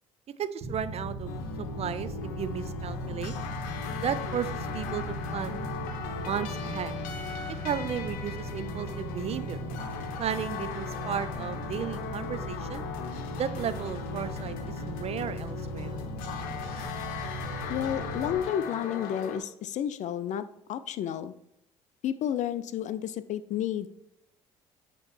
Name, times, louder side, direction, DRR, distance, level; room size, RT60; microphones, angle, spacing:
voice 1, 0.4-2.1 2.4-3.3 4.0-5.6 6.2-6.9 7.6-9.6 10.2-12.8 13.3-16.0, right 8 dB, 40° right, 13 dB, 0.5 m, -34 dB
sound 1, 0.6-18.4, right 1 dB, 65° right, 1.2 m, -38 dB
sound 2, 1.3-19.4, left 6 dB, 70° left, 0.8 m, -38 dB
voice 2, 17.7-21.3 22.0-23.9, left 10 dB, 50° left, 14 dB, 0.4 m, -31 dB
8.5 x 3.0 x 4.3 m, 0.79 s
hypercardioid pair, 55°, 16 cm